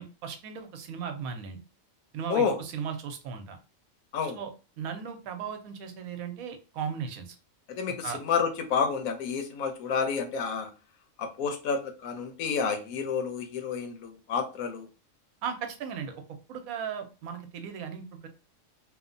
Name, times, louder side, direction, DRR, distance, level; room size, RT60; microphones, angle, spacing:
voice 1, 0.0-1.6 2.1-3.6 4.2-7.4 8.0-8.2 15.4-16.2 16.5-18.3, right 7 dB, 90° right, 6 dB, 1.1 m, -37 dB
voice 2, 7.8-10.7 11.2-14.9, left 6 dB, 90° left, 7 dB, 1.1 m, -29 dB
2.9 x 2.1 x 2.5 m, 0.33 s
omnidirectional pair, 1.4 m